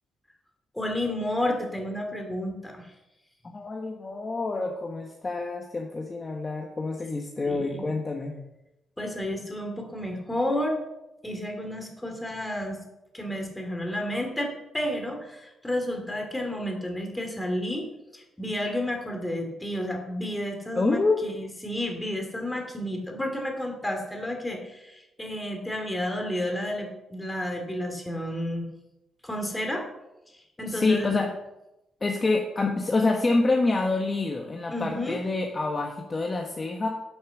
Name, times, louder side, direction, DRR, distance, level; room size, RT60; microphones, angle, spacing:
voice 1, 0.7-2.9 7.4-7.9 9.0-10.8 11.2-12.8 13.1-17.9 18.1-28.7 29.2-29.8 30.3-31.1 34.7-35.2, left 1 dB, 10° left, 3 dB, 2.6 m, -31 dB
voice 2, 3.4-8.3 20.7-21.2 30.7-31.3 32.0-36.9, left 3 dB, 25° left, 1 dB, 1.2 m, -27 dB
11.0 x 7.2 x 7.1 m, 0.91 s
cardioid pair, 140°, 0 cm